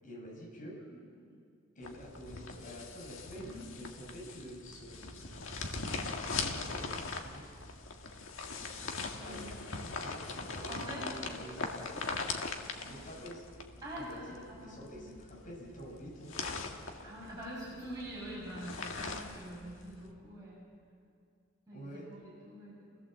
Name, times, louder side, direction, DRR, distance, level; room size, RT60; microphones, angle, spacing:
voice 1, 0.0-0.8 1.7-5.3 6.3-7.5 9.2-11.5 12.9-13.4 13.9-16.3 21.7-22.0, equal, 45° left, -3 dB, 6.3 m, -48 dB
voice 2, 0.9-1.3 3.5-3.7 9.2-9.6 10.6-12.2 12.8-13.0 13.8-15.1 17.0-20.7 21.7-23.0, equal, 20° right, -8 dB, 5.8 m, -46 dB
sound 1, 1.8-20.1, left 3 dB, 85° left, 1.9 m, -41 dB
28.5 x 16.5 x 7.6 m, 2.4 s
head